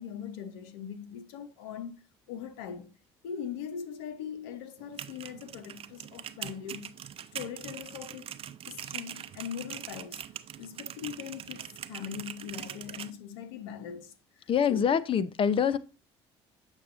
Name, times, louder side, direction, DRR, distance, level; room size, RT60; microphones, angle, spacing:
voice 1, 0.0-2.0 2.3-3.0 3.2-6.9 7.3-8.3 8.7-10.2 10.6-14.9, left 8 dB, 90° left, 0.9 m, -41 dB
sound 1, 4.8-13.1, right 10 dB, 50° right, 0.6 m, -42 dB
voice 2, 14.5-15.8, left 7 dB, 45° left, 0.7 m, -25 dB
7.3 x 6.7 x 2.6 m
supercardioid pair, 80°, 13 cm